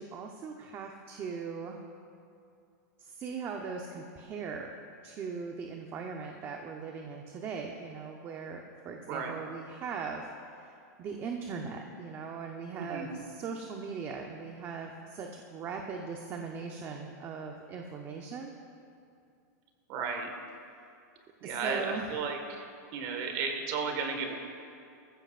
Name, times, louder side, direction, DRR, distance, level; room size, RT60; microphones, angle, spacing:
voice 1, 0.0-1.8 3.0-4.7 5.0-10.7 11.0-18.5 21.4-22.1, right 5 dB, 25° right, 2 dB, 0.8 m, -39 dB
voice 2, 9.0-9.5 12.8-13.1 19.9-20.3 21.4-24.4, right 5 dB, 40° right, 3 dB, 1.7 m, -34 dB
19.5 x 15.0 x 2.5 m, 2.5 s
supercardioid pair, 150°, 10 cm